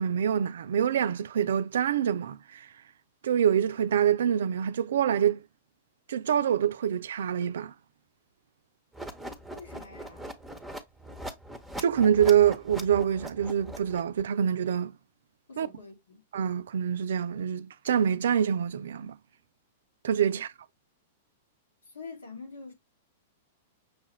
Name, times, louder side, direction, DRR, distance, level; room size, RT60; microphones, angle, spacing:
voice 1, 0.0-2.7 3.2-5.4 6.1-7.7 11.8-14.9 15.6-15.7 16.3-19.2 20.0-20.5, right 9 dB, 70° right, 0.4 m, -25 dB
sound 1, 8.9-14.2, equal, ahead, 0.8 m, -41 dB
voice 2, 9.5-10.3 15.5-16.2 20.3-20.4 21.8-22.7, left 4 dB, 85° left, 1.6 m, -45 dB
6.1 x 2.4 x 3.1 m
hypercardioid pair, 110°, 0 cm